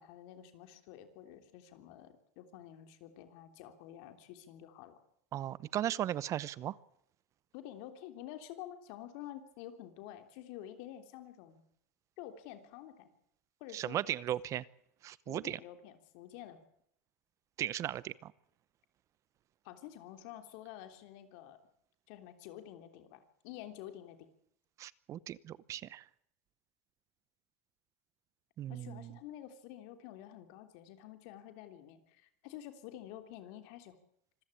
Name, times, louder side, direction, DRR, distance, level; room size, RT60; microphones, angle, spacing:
voice 1, 0.0-5.0 7.5-11.6 12.2-13.1 13.6-14.0 15.3-16.6 19.6-21.6 22.1-24.3 28.7-34.0, left 12 dB, 65° left, 8 dB, 3.4 m, -49 dB
voice 2, 5.3-6.8 13.7-14.6 15.0-15.6 17.6-18.3 24.8-26.0 28.6-29.2, right 12 dB, 40° right, 20 dB, 0.8 m, -37 dB
25.5 x 15.0 x 8.7 m, 0.72 s
supercardioid pair, 105°, 8 cm